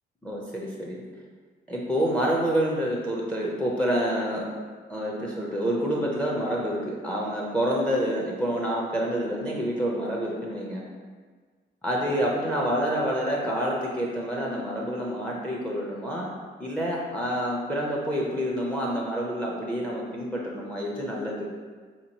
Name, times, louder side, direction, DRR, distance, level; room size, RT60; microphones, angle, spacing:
voice 1, 0.2-1.0 1.7-4.5 4.9-10.8 11.8-16.3 16.6-21.5, equal, 5° left, -3 dB, 0.5 m, -28 dB
3.7 x 2.9 x 2.8 m, 1.5 s
cardioid pair, 90°, 20 cm